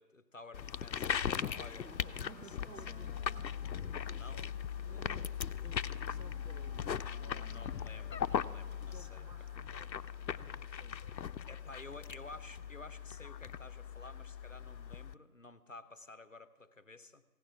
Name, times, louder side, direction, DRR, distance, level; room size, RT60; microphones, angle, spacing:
voice 1, 0.0-1.9 2.2-3.0 4.2-4.4 7.4-9.2 11.5-17.2, left 2 dB, 50° left, 14 dB, 0.7 m, -52 dB
sound 1, 0.5-15.1, left 8 dB, 85° left, 0.7 m, -39 dB
voice 2, 1.4-7.5 8.8-11.1, right 5 dB, 75° right, 13 dB, 0.9 m, -58 dB
Wind instrument woodwind instrument, 1.7-9.2, equal, 40° right, 0.7 m, -60 dB
sound 2, 4.7-12.6 12.9-13.0, equal, 15° right, 2.8 m, -67 dB
16.0 x 6.8 x 9.0 m, 1.3 s
figure-of-eight pair, 170°, 50 cm